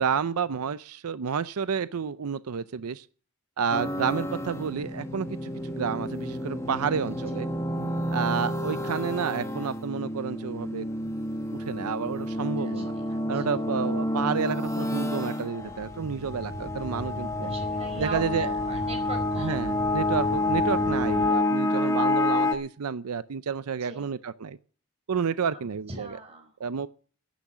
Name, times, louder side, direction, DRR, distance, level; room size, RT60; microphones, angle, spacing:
voice 1, 0.0-3.1 3.6-7.5 8.1-10.9 11.7-12.9 13.3-17.5 18.0-18.6 19.4-24.6 25.1-26.2 26.6-26.9, right 6 dB, 85° right, 0.5 m, -30 dB
sound 1, 3.7-22.6, left 1 dB, 15° left, 1.1 m, -29 dB
sound 2, 15.6-21.3, equal, 45° right, 2.7 m, -38 dB
voice 2, 17.4-19.7 23.8-24.1 25.9-26.5, right 2 dB, 30° right, 4.9 m, -40 dB
11.5 x 10.5 x 6.0 m
head